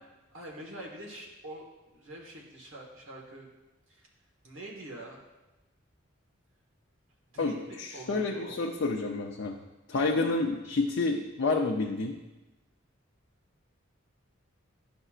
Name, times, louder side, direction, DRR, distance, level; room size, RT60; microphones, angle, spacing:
voice 1, 0.3-3.5 3.9-4.1 4.4-5.2 7.3-8.7 10.0-10.1, right 1 dB, 85° right, -1 dB, 1.5 m, -45 dB
voice 2, 7.4-9.6 9.9-12.2, left 3 dB, 60° left, 0 dB, 0.5 m, -29 dB
11.0 x 5.4 x 2.4 m, 1.1 s
head